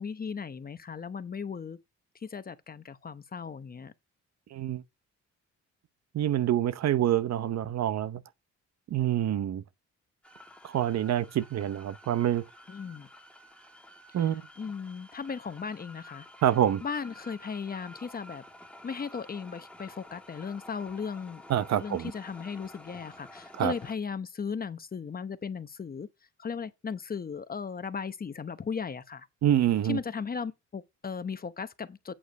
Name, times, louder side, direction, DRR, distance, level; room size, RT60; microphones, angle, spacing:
voice 1, 0.0-1.8 2.1-3.9 12.7-13.1 14.1-14.3 14.6-16.3 16.8-18.4 18.8-21.4 21.8-26.1 26.4-29.3 29.9-32.1, left 6 dB, 30° left, 0.9 m, -36 dB
voice 2, 4.5-4.8 6.1-8.2 8.9-9.6 10.6-12.4 14.1-14.4 16.4-16.8 21.5-22.1 23.5-23.7 29.4-30.0, right 11 dB, 60° right, 0.8 m, -26 dB
sound 1, 10.2-23.9, left 1 dB, 5° left, 1.9 m, -51 dB
8.6 x 5.0 x 5.2 m
cardioid pair, 90°, 30 cm